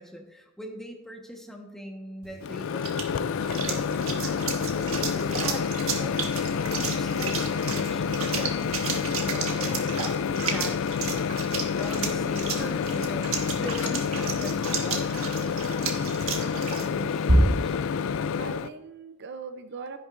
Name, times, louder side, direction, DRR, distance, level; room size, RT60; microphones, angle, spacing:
voice 1, 0.0-6.3 6.8-16.0 16.4-17.8, equal, ahead, 1 dB, 1.2 m, -41 dB
sound 1, 2.2-17.8, right 3 dB, 75° right, 1.4 m, -32 dB
Microwave oven, 2.4-18.7, left 6 dB, 65° left, 0.3 m, -28 dB
voice 2, 12.5-13.1 18.4-20.0, right 4 dB, 55° right, 9 dB, 0.5 m, -41 dB
12.5 x 10.5 x 2.5 m, 0.97 s
head